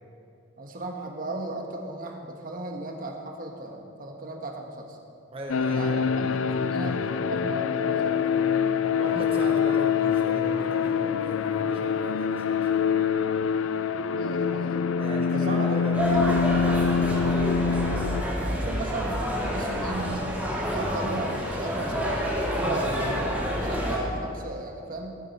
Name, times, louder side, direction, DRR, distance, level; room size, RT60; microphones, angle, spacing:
voice 1, 0.6-5.0 5.7-8.3 14.2-14.8 15.3-15.8 16.1-16.4 18.2-20.2 20.7-25.2, right 2 dB, 45° right, 2 dB, 1.4 m, -35 dB
voice 2, 5.3-5.9 6.4-7.0 9.0-12.8 15.0-16.5 17.0-17.4, right 1 dB, 30° right, 0 dB, 1.0 m, -38 dB
sound 1, 5.5-18.2, left 6 dB, 80° left, 0.4 m, -25 dB
sound 2, 15.9-24.0, equal, 10° right, 2.4 m, -28 dB
18.0 x 9.1 x 4.3 m, 2.6 s
head